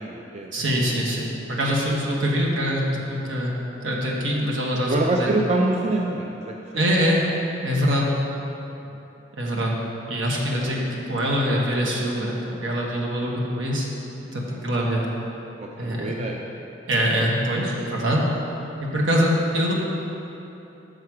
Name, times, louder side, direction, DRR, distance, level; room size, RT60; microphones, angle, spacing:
voice 1, 0.0-1.0 4.8-6.9 8.9-9.0 10.3-10.8 12.9-13.6 14.5-14.6 15.6-16.4, right 2 dB, 35° right, 0 dB, 0.4 m, -27 dB
voice 2, 0.5-2.8 3.1-3.5 3.8-5.3 6.7-7.2 7.6-8.1 9.3-9.7 10.1-13.9 14.3-15.0 15.8-16.1 16.9-18.2 18.8-19.7, equal, 80° right, -3 dB, 1.2 m, -24 dB
6.6 x 6.0 x 4.7 m, 3.0 s
head